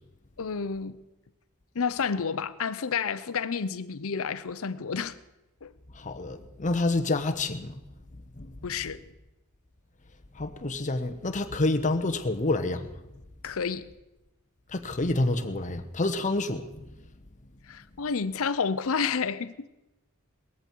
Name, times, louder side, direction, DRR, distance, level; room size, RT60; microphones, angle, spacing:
voice 1, 0.4-1.0 1.7-5.2 5.6-5.7 8.6-9.0 13.4-13.9 17.7-19.7, left 5 dB, 70° left, 0.7 m, -30 dB
voice 2, 6.0-7.8 8.4-8.5 10.4-12.9 14.7-16.7, left 2 dB, 35° left, 1.0 m, -28 dB
19.0 x 14.0 x 4.6 m
head